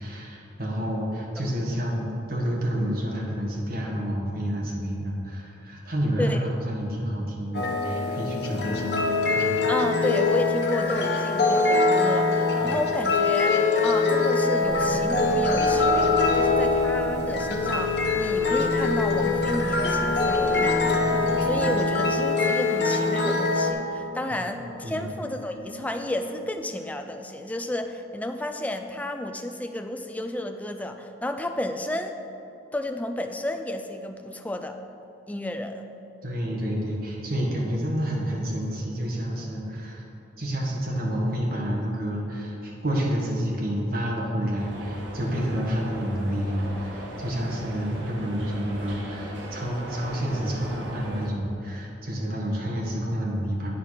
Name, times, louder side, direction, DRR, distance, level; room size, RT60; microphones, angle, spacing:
voice 1, 0.0-8.9 9.3-9.6 12.6-12.8 24.8-25.1 36.2-40.0 40.4-53.7, equal, 50° right, -3 dB, 1.4 m, -29 dB
sound 1, 7.5-23.7, left 3 dB, 60° left, 0.8 m, -23 dB
voice 2, 9.7-32.2 32.7-34.8 35.3-35.8, left 1 dB, 10° left, 6 dB, 0.4 m, -32 dB
sound 2, 14.6-26.5, equal, 65° right, 1.6 m, -39 dB
sound 3, 44.6-51.3, right 1 dB, 90° right, 1.2 m, -39 dB
9.1 x 4.7 x 5.8 m, 2.9 s
head